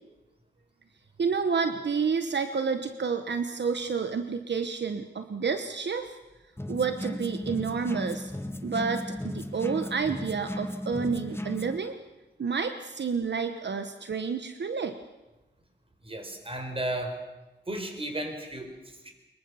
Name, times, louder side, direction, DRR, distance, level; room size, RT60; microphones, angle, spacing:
voice 1, 1.2-6.2 6.7-8.3 8.6-12.0 12.4-15.0, right 5 dB, 70° right, 8 dB, 1.2 m, -29 dB
sound 1, 6.6-11.8, left 1 dB, 15° left, 1.3 m, -36 dB
voice 2, 16.0-17.2 17.7-19.1, right 1 dB, 30° right, 5 dB, 4.4 m, -34 dB
23.5 x 22.0 x 7.1 m, 1.1 s
wide cardioid pair, 95°, 19 cm